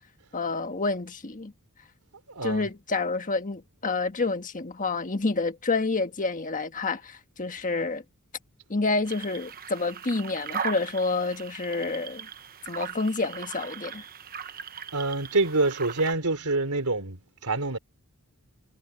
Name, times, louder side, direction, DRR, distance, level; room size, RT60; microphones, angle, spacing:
voice 1, 0.3-1.5 2.4-8.0 8.7-12.3 12.7-14.0, left 3 dB, 35° left, 1.5 m, -28 dB
voice 2, 2.3-2.7 14.9-17.8, right 3 dB, 80° right, 3.6 m, -26 dB
sound 1, 9.0-16.1, right 7 dB, 40° right, 1.1 m, -39 dB
head